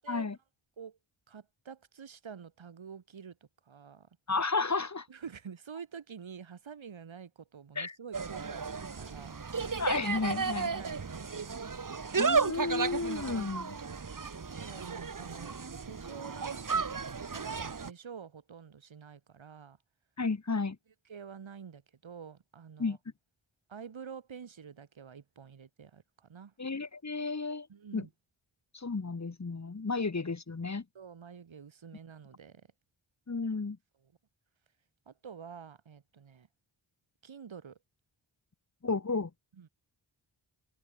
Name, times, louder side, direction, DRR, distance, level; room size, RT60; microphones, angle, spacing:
voice 1, 0.1-0.4 4.3-5.1 7.8-8.0 9.8-10.7 12.2-13.8 20.2-20.8 22.8-23.0 26.6-27.7 27.9-28.1 28.7-30.8 33.3-33.8 38.8-39.3, left 4 dB, 35° left, 2.3 m, -32 dB
voice 2, 1.3-3.4 3.7-4.1 5.1-9.4 10.8-12.1 14.5-15.6 15.8-19.8 21.1-23.0 23.7-26.5 27.7-28.1 31.0-32.7 35.1-36.5 37.2-37.8 39.6-39.7, right 7 dB, 90° right, 6.8 m, -48 dB
Insect, 8.1-17.9, right 5 dB, 45° right, 2.0 m, -34 dB
wide cardioid pair, 70°, 45 cm